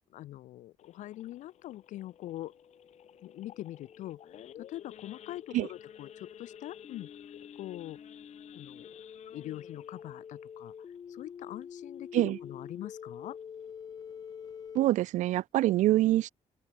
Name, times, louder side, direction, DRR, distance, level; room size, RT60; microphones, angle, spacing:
voice 1, 0.0-2.5 3.2-7.1 7.6-8.0 8.5-8.9 9.3-13.4, left 14 dB, 90° left, 0.7 m, -43 dB
Idling / Accelerating revving vroom / Sawing, 0.8-11.9 12.3-12.5 12.7-12.8 13.3-13.6 14.0-14.1 14.3-14.7, left 11 dB, 65° left, 5.5 m, -54 dB
sound 1, 1.6-14.8, left 7 dB, 30° left, 0.5 m, -48 dB
voice 2, 14.7-16.3, right 15 dB, 80° right, 0.5 m, -25 dB
open air
cardioid pair, 170°, 12 cm